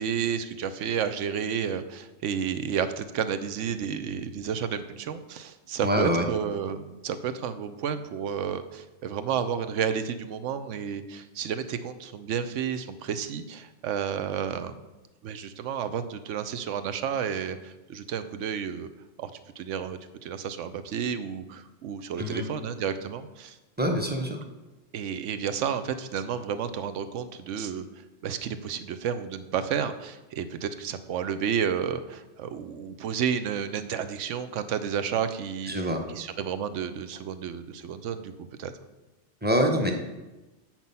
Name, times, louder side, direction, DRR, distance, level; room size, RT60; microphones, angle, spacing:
voice 1, 0.0-14.9 15.2-18.9 19.2-19.3 19.6-23.6 24.9-38.7, right 7 dB, 90° right, 11 dB, 1.0 m, -31 dB
voice 2, 5.8-6.2 22.2-22.4 23.8-24.4 35.7-36.0 39.4-39.9, equal, 10° right, 3 dB, 0.8 m, -25 dB
7.4 x 6.0 x 5.5 m, 1.1 s
omnidirectional pair, 1.2 m